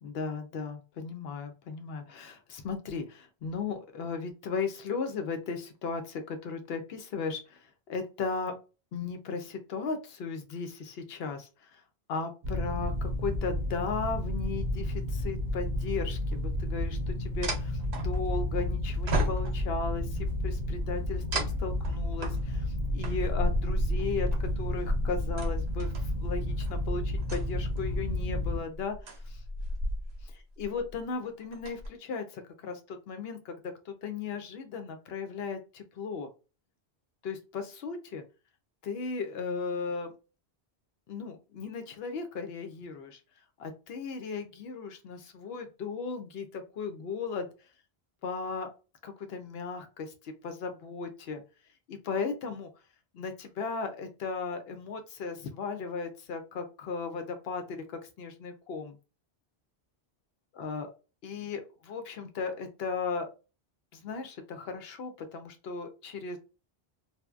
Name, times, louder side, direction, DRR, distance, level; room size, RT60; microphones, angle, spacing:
voice 1, 0.0-8.6 8.9-11.8 12.1-29.4 30.6-33.5 33.9-36.3 37.2-38.2 38.8-40.1 41.1-43.2 43.6-47.5 48.2-48.7 49.0-51.4 51.9-52.7 53.1-59.0 60.6-60.9 61.2-63.3 63.9-66.4, left 4 dB, 75° left, 6 dB, 0.8 m, -36 dB
sound 1, 12.4-28.6, left 1 dB, 55° right, 0.7 m, -32 dB
sound 2, 16.3-16.4 17.4-18.6 19.1-19.9 21.3-26.0 26.6-26.8 27.2-27.9 28.5-30.3 30.6-31.0 31.4-31.9, equal, 90° right, 0.9 m, -33 dB
2.7 x 2.0 x 2.2 m, 0.31 s
omnidirectional pair, 1.0 m